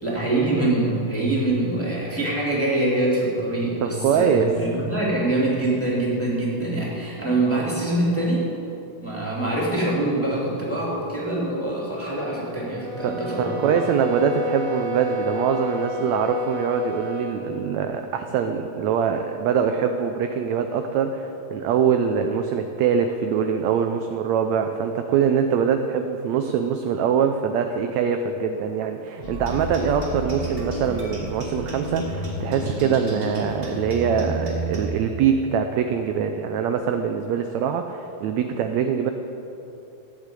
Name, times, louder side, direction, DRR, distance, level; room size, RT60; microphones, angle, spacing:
voice 1, 0.0-8.5 9.0-13.8, right 2 dB, 5° left, -6 dB, 2.7 m, -24 dB
voice 2, 3.8-4.5 13.0-39.1, right 7 dB, 75° right, 6 dB, 1.7 m, -23 dB
sound 1, 12.7-17.4, left 2 dB, 35° right, 3.5 m, -30 dB
sound 2, 29.2-34.8, equal, 20° right, 2.4 m, -30 dB
15.0 x 7.4 x 9.0 m, 3.0 s
omnidirectional pair, 3.8 m